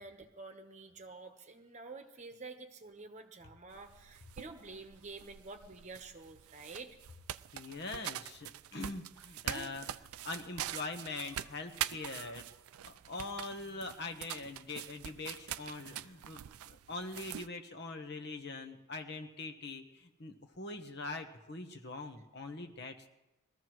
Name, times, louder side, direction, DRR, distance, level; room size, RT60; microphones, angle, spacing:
voice 1, 0.0-7.0 9.5-9.7, right 3 dB, 35° right, 6 dB, 1.0 m, -49 dB
sound 1, 3.7-17.5, right 11 dB, 90° right, 0.4 m, -44 dB
voice 2, 7.5-9.8 10.2-12.4 13.1-16.4 16.7-23.0, left 3 dB, 50° left, 5 dB, 1.2 m, -43 dB
22.0 x 14.0 x 3.1 m, 0.95 s
head